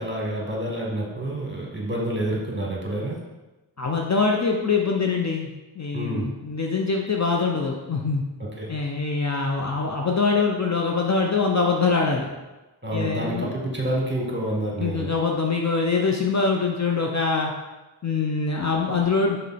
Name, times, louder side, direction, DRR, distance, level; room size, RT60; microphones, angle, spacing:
voice 1, 0.0-3.2 5.9-6.3 8.4-8.7 12.8-15.1, right 1 dB, 25° right, -3 dB, 1.9 m, -28 dB
voice 2, 3.8-5.5 5.8-8.2 8.7-12.3 12.9-13.5 14.8-17.5 18.0-19.4, left 4 dB, 35° left, 1 dB, 0.7 m, -23 dB
5.3 x 4.3 x 4.2 m, 1.1 s
cardioid pair, 60°, 48 cm